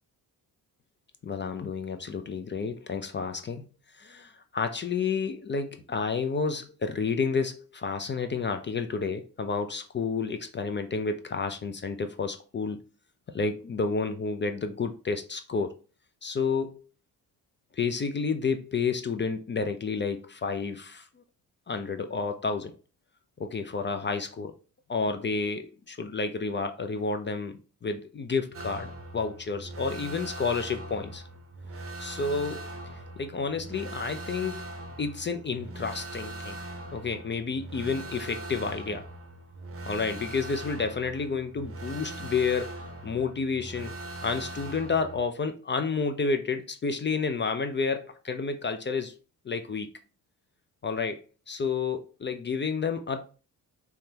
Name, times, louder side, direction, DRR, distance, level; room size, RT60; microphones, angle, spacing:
voice 1, 1.2-3.7 4.0-12.8 13.3-15.8 16.2-16.9 17.7-21.1 21.7-22.7 23.4-24.5 24.9-31.2 32.0-32.7 33.2-34.6 35.0-36.6 36.9-39.1 39.9-42.7 43.0-43.9 44.2-49.1 49.5-49.9 50.8-51.2 51.5-53.2, left 4 dB, 25° left, 0.4 m, -30 dB
sound 1, 28.5-45.2, right 2 dB, 30° right, 0.7 m, -41 dB
3.5 x 2.1 x 2.8 m
supercardioid pair, 50°, 45 cm